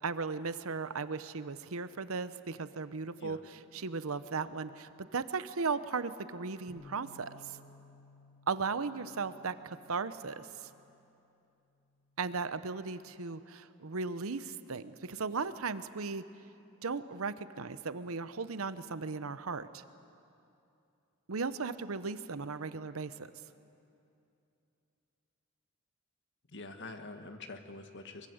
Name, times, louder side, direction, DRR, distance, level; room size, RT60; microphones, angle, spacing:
voice 1, 0.0-7.4 8.5-10.7 12.2-16.2 16.8-19.8 21.3-23.3, right 4 dB, 80° right, 13 dB, 0.9 m, -36 dB
Bass guitar, 6.7-12.9, left 2 dB, 5° left, 5.8 m, -60 dB
voice 2, 26.5-28.3, left 2 dB, 60° left, 7 dB, 1.7 m, -45 dB
23.5 x 23.0 x 8.0 m, 2.7 s
head